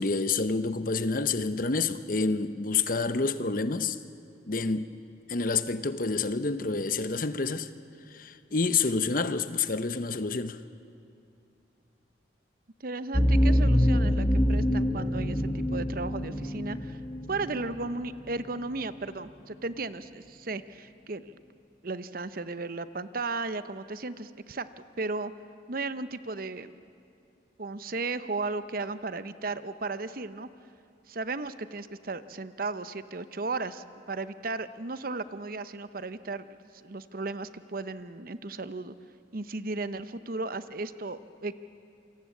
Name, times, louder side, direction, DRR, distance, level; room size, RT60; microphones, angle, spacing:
voice 1, 0.0-4.0 4.5-4.9 5.3-7.7 8.1-10.6, left 4 dB, 45° left, 0.9 m, -28 dB
voice 2, 12.8-17.0 17.3-21.4 21.8-24.7 25.0-25.3 25.7-26.8 27.6-30.5 31.1-36.5 36.7-38.9 39.3-41.5, right 3 dB, 50° right, 0.8 m, -35 dB
sound 1, 13.1-17.9, equal, 15° left, 1.1 m, -25 dB
28.0 x 25.0 x 8.5 m
head